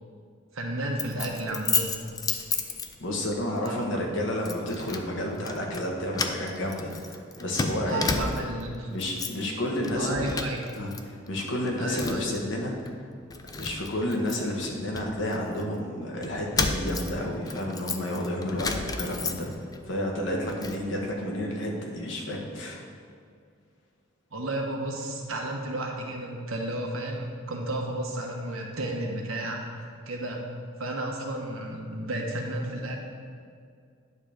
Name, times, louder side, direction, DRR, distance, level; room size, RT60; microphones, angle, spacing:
voice 1, 0.5-1.9 3.6-3.8 7.8-8.9 10.0-10.6 11.8-12.3 24.3-29.6 30.1-30.4 30.8-33.0, right 1 dB, 90° right, 0 dB, 1.2 m, -32 dB
Keys jangling, 1.0-3.3 3.7-3.9 4.5-5.1 5.4-5.9 6.1-8.6 8.9-9.5 9.8-11.0 11.3-12.4 12.9-13.0 13.3-15.6 16.2-19.8 20.1-20.8, left 4 dB, 20° left, 0.3 m, -32 dB
voice 2, 3.0-8.3 8.9-10.4 10.7-12.7 13.6-22.8, left 1 dB, 65° left, 0 dB, 1.3 m, -31 dB
9.6 x 3.5 x 6.4 m, 2.3 s
head